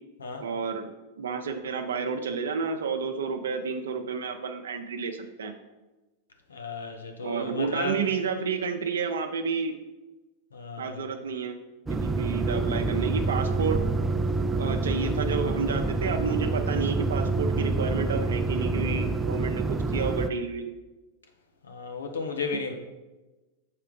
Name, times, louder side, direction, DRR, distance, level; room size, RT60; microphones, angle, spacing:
voice 1, 0.4-0.9 1.2-5.5 7.2-9.8 10.8-11.6 11.9-13.8 14.6-20.7, right 5 dB, 80° right, 5 dB, 0.5 m, -30 dB
voice 2, 6.5-8.0 10.5-11.0 21.7-22.7, left 4 dB, 85° left, 4 dB, 0.9 m, -34 dB
sound 1, 11.9-20.3, right 3 dB, 15° right, 0.4 m, -27 dB
6.5 x 4.5 x 3.7 m, 1.1 s
hypercardioid pair, 100°, 0 cm